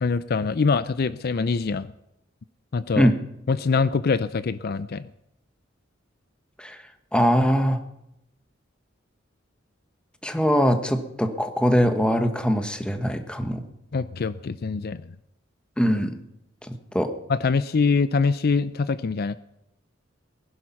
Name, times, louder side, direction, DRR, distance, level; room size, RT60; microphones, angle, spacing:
voice 1, 0.0-1.9 2.7-3.1 3.5-5.1 13.9-15.0 17.3-19.4, left 4 dB, 50° left, 15 dB, 0.5 m, -24 dB
voice 2, 7.1-7.8 10.2-13.6 15.8-16.2 16.6-17.1, equal, 5° left, 7 dB, 1.3 m, -22 dB
20.0 x 11.0 x 5.9 m, 0.85 s
head